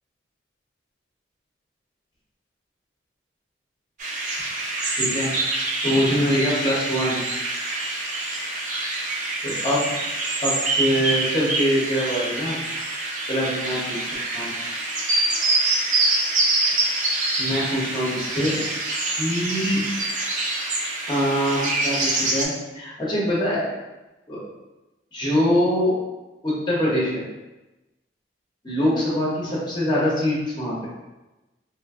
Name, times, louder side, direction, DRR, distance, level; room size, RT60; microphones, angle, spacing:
sound 1, 4.0-22.4, right 2 dB, 40° right, 0.4 m, -26 dB
voice 1, 5.0-5.3 5.8-7.2 9.4-9.9 10.4-12.6 13.3-14.1 14.3-14.5 17.4-18.5 19.1-19.8 21.1-23.6 24.3-24.4 25.1-26.0 26.4-27.2 28.6-30.9, equal, 25° left, -6 dB, 0.8 m, -23 dB
2.9 x 2.5 x 2.3 m, 1.1 s
head